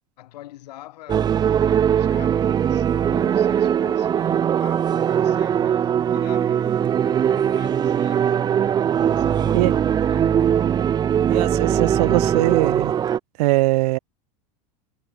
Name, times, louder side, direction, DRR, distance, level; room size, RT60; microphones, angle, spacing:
voice 1, 0.2-8.3 9.1-10.7, left 15 dB, 80° left, 6.3 m, -44 dB
sound 1, 1.1-13.2, right 9 dB, 20° right, 0.4 m, -20 dB
voice 2, 11.3-12.9 13.4-14.0, right 20 dB, 75° right, 0.6 m, -21 dB
supercardioid pair, 115°, 21 cm